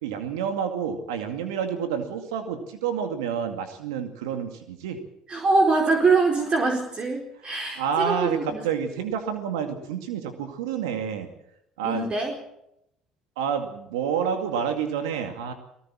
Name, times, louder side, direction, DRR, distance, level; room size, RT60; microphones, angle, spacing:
voice 1, 0.0-5.0 7.8-11.3 11.8-12.1 13.4-15.5, right 7 dB, 85° right, 6 dB, 2.2 m, -29 dB
voice 2, 5.3-8.6 11.8-12.3, right 3 dB, 40° right, 1 dB, 4.5 m, -23 dB
19.5 x 18.0 x 7.5 m, 0.81 s
hypercardioid pair, 65°, 3 cm